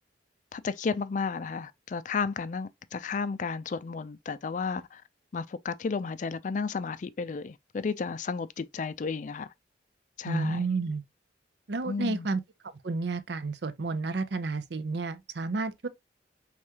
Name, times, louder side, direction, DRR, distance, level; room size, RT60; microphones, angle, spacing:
voice 1, 0.5-5.0 5.3-9.5 10.2-10.6 11.9-12.3, left 5 dB, 40° left, 0.3 m, -33 dB
voice 2, 10.3-11.0 11.7-12.4 12.8-15.9, right 3 dB, 60° right, 0.6 m, -31 dB
4.8 x 3.5 x 2.8 m
head